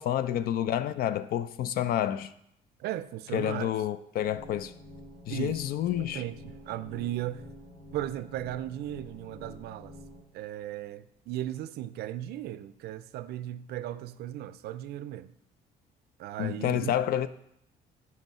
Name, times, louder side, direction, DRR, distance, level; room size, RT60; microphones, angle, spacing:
voice 1, 0.0-2.3 3.3-4.7 5.3-6.2 16.4-17.3, left 11 dB, 60° left, 0.4 m, -29 dB
voice 2, 2.8-3.7 5.3-5.6 6.0-7.5 7.9-9.9 10.3-15.3 16.2-16.9, right 13 dB, 70° right, 0.4 m, -36 dB
sound 1, 4.2-10.2, left 1 dB, 25° left, 3.2 m, -48 dB
8.8 x 3.2 x 5.5 m
cardioid pair, 110°, 17 cm